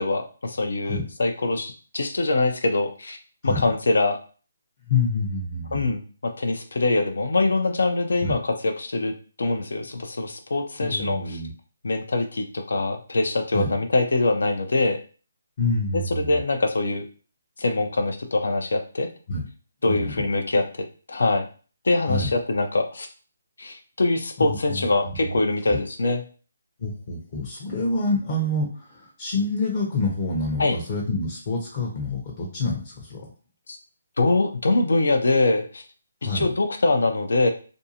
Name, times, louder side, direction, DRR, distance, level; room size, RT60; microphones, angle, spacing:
voice 1, 0.0-3.2 3.4-4.2 5.7-11.4 11.8-15.0 15.9-17.0 17.6-19.1 19.8-21.5 21.8-23.1 23.6-26.2 30.6-30.8 33.7-33.8 34.2-35.8 36.2-37.5, left 2 dB, 75° left, 6 dB, 0.5 m, -23 dB
voice 2, 4.9-5.9 8.2-8.4 10.8-11.5 13.5-13.7 15.6-16.4 19.3-19.4 19.9-20.3 22.0-22.3 24.4-24.9 25.2-25.4 25.7-25.8 26.8-33.2 36.2-36.5, left 2 dB, 40° left, -2 dB, 0.7 m, -27 dB
2.6 x 2.3 x 2.7 m, 0.38 s
hypercardioid pair, 155°, 0 cm